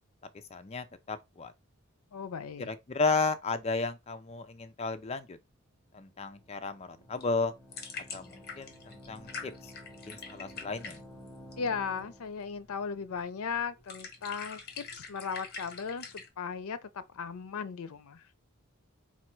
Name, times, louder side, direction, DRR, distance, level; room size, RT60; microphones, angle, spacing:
voice 1, 0.5-1.5 2.7-5.4 5.9-7.5 8.1-9.7 10.1-11.0, left 3 dB, 30° left, 0.4 m, -33 dB
voice 2, 2.1-2.7 11.6-18.2, left 6 dB, 80° left, 0.5 m, -37 dB
sound 1, 5.6-12.4, equal, ahead, 0.7 m, -52 dB
sound 2, 7.0-16.3, left 5 dB, 45° left, 0.9 m, -45 dB
4.3 x 2.3 x 4.4 m
head